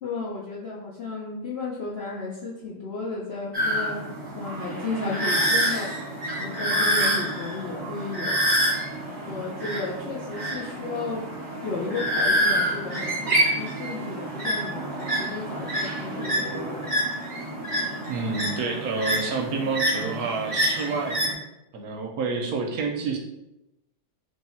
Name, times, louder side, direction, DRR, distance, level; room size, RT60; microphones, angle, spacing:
voice 1, 0.0-4.1 4.3-6.1 6.4-8.4 9.2-11.3 11.6-17.0, left 3 dB, 60° left, -6 dB, 0.6 m, -34 dB
sound 1, 3.5-21.3, right 1 dB, 30° right, 0.9 m, -27 dB
voice 2, 18.1-21.2 21.7-23.2, right 4 dB, 70° right, 2 dB, 1.0 m, -28 dB
3.2 x 2.7 x 4.2 m, 0.91 s
omnidirectional pair, 1.8 m